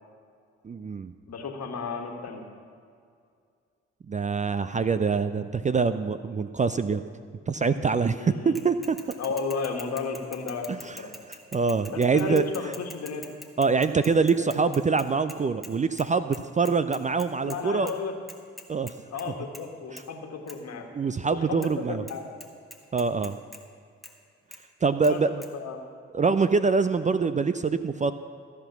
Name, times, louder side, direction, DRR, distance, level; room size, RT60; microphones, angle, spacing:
voice 1, 0.6-1.1 4.1-7.0 7.5-9.0 10.7-11.0 11.5-12.5 13.6-17.9 18.7-18.9 19.9-20.0 20.9-22.0 22.9-23.4 24.8-25.4 26.1-28.1, right 4 dB, 25° right, 12 dB, 0.4 m, -24 dB
voice 2, 1.3-2.4 8.2-8.5 9.2-11.1 11.9-13.2 17.4-18.2 19.1-20.9 21.3-22.3 25.1-25.2 25.5-25.8, left 5 dB, 55° left, 3 dB, 1.7 m, -33 dB
Bicycle / Mechanisms, 8.6-15.7 16.0-16.1 16.3-17.6 17.9-18.0 18.3-19.3 19.5-19.7 20.0-20.1 20.5-20.6 21.6-21.7 22.1-22.2 22.4-23.6 24.0-24.1 24.5-24.6 25.0-25.1 25.4-25.5, left 1 dB, ahead, 1.5 m, -44 dB
14.5 x 6.1 x 7.1 m, 2.3 s
hypercardioid pair, 40°, 32 cm